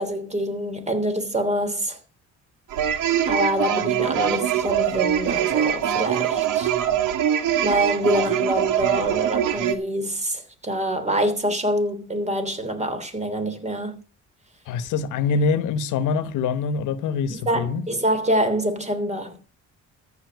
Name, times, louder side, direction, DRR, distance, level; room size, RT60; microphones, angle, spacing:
voice 1, 0.0-2.0 3.3-6.9 7.6-14.0 17.3-19.4, right 1 dB, 20° right, 3.1 m, -25 dB
sound 1, 2.7-9.8, right 10 dB, 85° right, 1.6 m, -23 dB
voice 2, 14.7-17.8, left 5 dB, 85° left, 1.0 m, -24 dB
14.0 x 5.6 x 7.9 m
cardioid pair, 90°, 30 cm